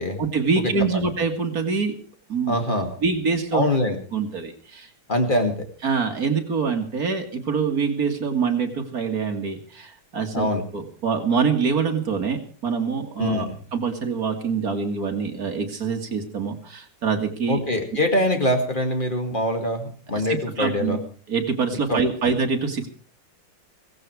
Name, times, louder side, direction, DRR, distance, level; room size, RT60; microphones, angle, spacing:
voice 1, 0.2-1.9 2.3-2.6 3.0-3.6 4.1-4.9 5.8-10.5 10.7-17.6 20.3-21.0 21.3-22.9, right 5 dB, 45° right, 4 dB, 2.3 m, -25 dB
voice 2, 2.5-2.9 3.5-4.0 5.1-5.5 10.3-10.6 13.2-13.5 17.5-21.0 21.9-22.0, left 1 dB, 25° left, 5 dB, 2.3 m, -23 dB
17.0 x 15.5 x 4.8 m, 0.43 s
omnidirectional pair, 2.3 m